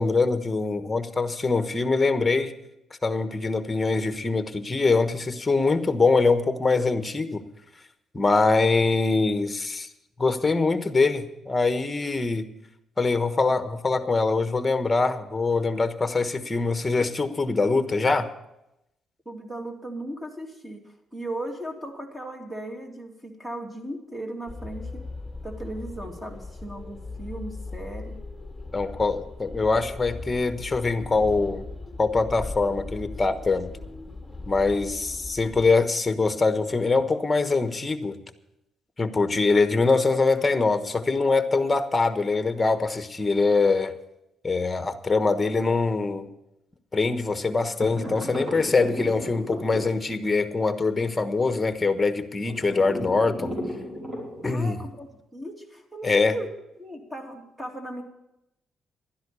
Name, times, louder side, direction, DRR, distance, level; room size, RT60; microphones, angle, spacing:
voice 1, 0.0-2.5 3.0-7.4 8.1-9.9 10.2-12.5 13.0-18.3 28.7-31.7 32.0-33.7 34.5-38.2 39.0-43.9 44.4-46.3 46.9-53.6 54.4-54.8 56.0-56.3, left 3 dB, 20° left, 9 dB, 1.2 m, -23 dB
voice 2, 19.2-25.0 25.4-28.2 54.5-56.5 56.8-58.0, right 1 dB, 15° right, 3 dB, 2.7 m, -37 dB
sound 1, 24.5-35.7, left 3 dB, 5° left, 2.4 m, -38 dB
sound 2, 47.8-50.4 52.4-54.7, equal, 35° right, 5.4 m, -34 dB
12.5 x 10.5 x 6.9 m, 0.86 s
cardioid pair, 90°, 0 cm